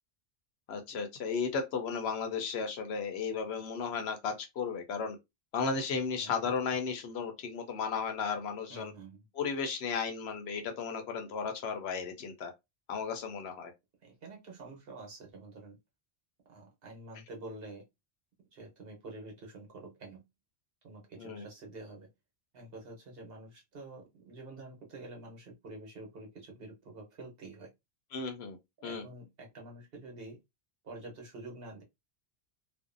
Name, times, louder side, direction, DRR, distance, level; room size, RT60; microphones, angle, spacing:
voice 1, 0.7-5.2 5.5-8.9 9.3-12.5 12.9-13.7 21.2-21.5 28.1-28.6 28.8-29.0, left 5 dB, 75° left, 0.9 m, -34 dB
voice 2, 8.7-9.2 14.0-15.8 16.5-17.8 18.5-20.2 20.8-22.1 22.5-27.7 28.8-30.4 30.8-31.8, right 2 dB, 60° right, 1.0 m, -48 dB
2.5 x 2.1 x 2.4 m
omnidirectional pair, 1.1 m